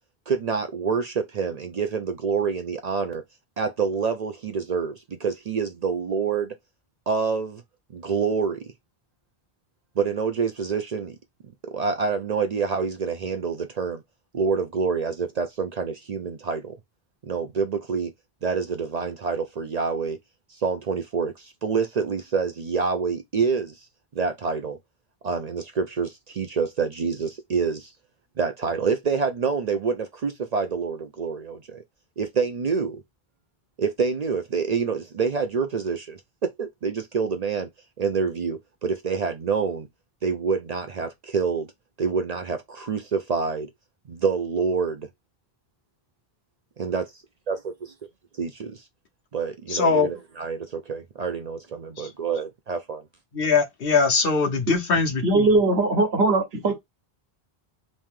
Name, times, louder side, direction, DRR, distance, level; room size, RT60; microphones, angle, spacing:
voice 1, 0.3-3.2 3.6-6.5 7.1-7.6 7.9-8.6 10.0-11.2 11.6-14.0 14.3-16.8 17.2-18.1 18.4-20.2 20.5-23.7 24.1-24.8 25.2-27.9 28.4-31.8 32.2-33.0 33.8-37.7 38.0-39.9 40.2-41.7 42.0-43.7 44.1-45.1 46.8-47.0 47.5-47.6 48.4-48.8 49.3-53.0, right 5 dB, 50° right, 0.5 m, -27 dB
voice 2, 49.7-50.1 52.0-52.1 53.3-55.1, left 4 dB, 65° left, 1.0 m, -21 dB
voice 3, 55.2-56.7, right 2 dB, 80° right, 1.3 m, -20 dB
3.2 x 2.7 x 3.5 m
omnidirectional pair, 1.0 m